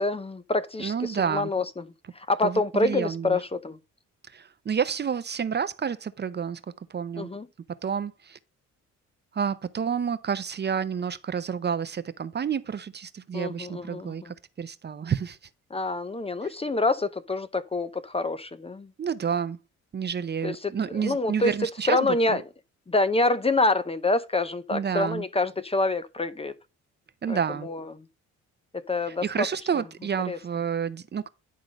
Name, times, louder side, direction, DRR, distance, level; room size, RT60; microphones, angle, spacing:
voice 1, 0.0-1.8 2.1-3.8 7.2-7.5 13.3-14.3 15.7-18.9 20.4-21.5 21.9-22.4 22.9-26.5 27.3-27.8 28.7-29.5 30.3-30.4, left 2 dB, 20° left, 0.6 m, -26 dB
voice 2, 0.8-1.5 2.4-3.4 4.2-6.6 6.9-7.3 7.8-8.4 9.3-15.4 19.0-19.6 19.9-22.4 24.7-25.2 27.2-27.7 29.1-31.3, right 7 dB, 35° right, 0.7 m, -29 dB
10.5 x 3.8 x 5.1 m
cardioid pair, 90°, 30 cm